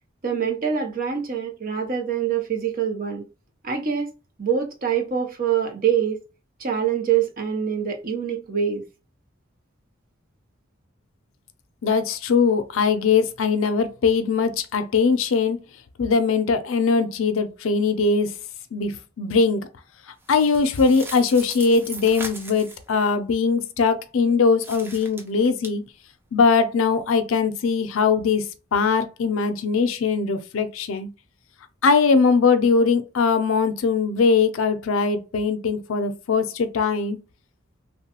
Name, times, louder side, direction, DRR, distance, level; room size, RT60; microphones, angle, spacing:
voice 1, 0.2-3.2 3.6-4.1 4.4-6.2 6.6-8.8, right 8 dB, 45° right, 0.7 m, -25 dB
voice 2, 11.8-15.6 16.0-18.3 18.7-19.7 20.3-25.8 26.3-28.4 28.7-31.1 31.8-37.2, left 5 dB, 80° left, 0.5 m, -21 dB
sound 1, 20.2-22.9 24.6-25.7, right 2 dB, 10° right, 0.4 m, -38 dB
3.0 x 2.2 x 2.9 m
head